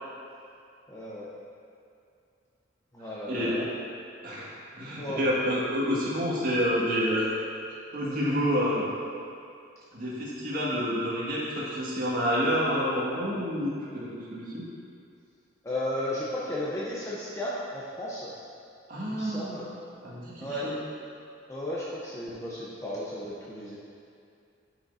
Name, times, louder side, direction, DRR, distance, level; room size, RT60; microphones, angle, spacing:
voice 1, 0.9-1.3 2.9-3.7 4.8-5.2 15.6-18.3 19.0-19.7 20.4-20.7 21.5-23.8, left 1 dB, 15° left, -7 dB, 0.7 m, -34 dB
voice 2, 4.8-7.3 7.9-8.9 9.9-14.4 18.9-19.6 20.0-20.7, equal, 45° right, -8 dB, 1.9 m, -28 dB
11.5 x 6.1 x 2.7 m, 2.4 s
head